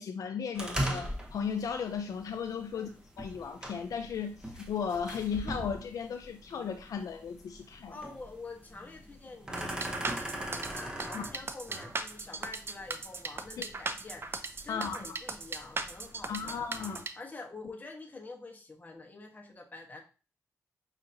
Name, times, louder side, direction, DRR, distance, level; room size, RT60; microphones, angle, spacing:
voice 1, 0.0-2.9 3.2-8.0 11.1-11.3 13.6-13.7 14.7-15.2 16.3-17.1, left 6 dB, 70° left, 6 dB, 0.4 m, -36 dB
sound 1, 0.5-17.0, right 1 dB, 15° right, 1.0 m, -41 dB
voice 2, 2.7-3.0 7.9-16.6 17.2-20.0, left 3 dB, 30° left, 1 dB, 1.1 m, -47 dB
sound 2, 9.6-17.1, right 3 dB, 40° right, 0.5 m, -37 dB
5.6 x 2.8 x 2.6 m, 0.35 s
cardioid pair, 65°, 6 cm